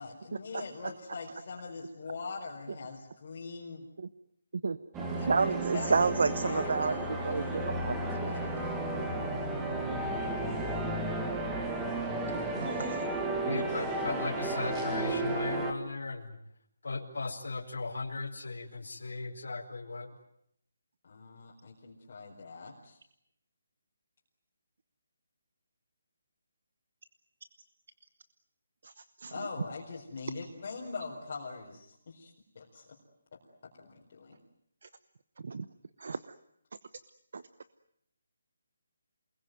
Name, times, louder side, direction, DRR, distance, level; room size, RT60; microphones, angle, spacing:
voice 1, 0.0-3.9 5.1-7.8 8.3-8.7 21.0-23.0 29.3-32.9 33.8-34.4, left 4 dB, 35° left, -2 dB, 4.4 m, -42 dB
sound 1, 4.9-15.7, right 2 dB, 10° right, 1.7 m, -33 dB
voice 2, 5.3-8.1 9.8-9.9 12.5-13.0 28.8-29.5 34.8-34.9 35.4-35.7 36.0-36.3 37.3-37.4, right 4 dB, 55° right, 13 dB, 1.0 m, -31 dB
voice 3, 13.4-16.3 16.8-20.1, left 3 dB, 85° left, -1 dB, 4.6 m, -37 dB
28.5 x 21.0 x 9.3 m, 0.74 s
hypercardioid pair, 175°, 0 cm